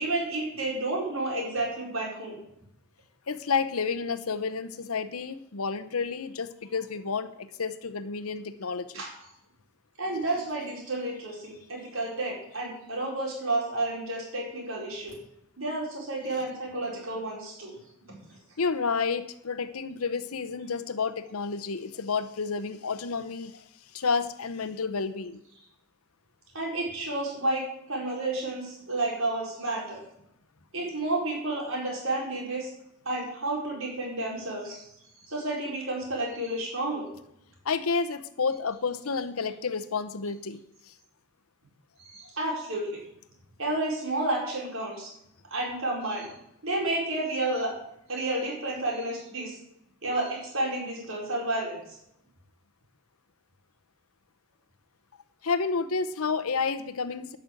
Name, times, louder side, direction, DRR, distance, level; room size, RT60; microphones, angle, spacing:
voice 1, 0.0-2.4 8.9-9.1 10.0-15.1 15.6-17.7 18.0-18.1 26.5-30.0 30.7-32.7 33.0-34.8 35.3-37.1 42.0-43.0 43.6-45.1 45.5-46.3 46.6-47.7 48.1-49.6 50.0-52.0, right 2 dB, 70° right, -2 dB, 4.8 m, -31 dB
voice 2, 3.3-9.0 18.6-23.6 23.9-25.4 37.6-40.6 55.4-57.4, left 5 dB, 85° left, 12 dB, 0.8 m, -30 dB
11.5 x 6.2 x 7.8 m, 0.77 s
head